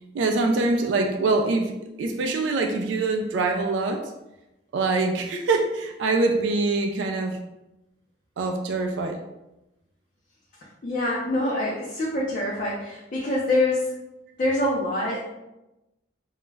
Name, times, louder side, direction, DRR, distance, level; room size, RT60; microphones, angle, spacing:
voice 1, 0.1-4.1 4.7-7.4 8.4-9.2, right 3 dB, 75° right, 4 dB, 0.3 m, -24 dB
voice 2, 10.8-13.9 14.4-15.2, left 1 dB, 45° left, -5 dB, 0.4 m, -25 dB
2.3 x 2.0 x 3.2 m, 0.95 s
head